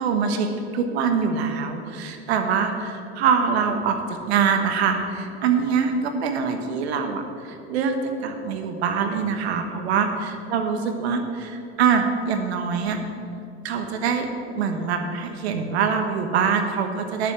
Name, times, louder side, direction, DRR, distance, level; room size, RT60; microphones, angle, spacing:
voice 1, 0.0-13.0 13.6-14.3 14.5-17.3, right 6 dB, 75° right, 6 dB, 1.4 m, -24 dB
11.0 x 7.3 x 7.5 m, 2.6 s
hypercardioid pair, 75°, 32 cm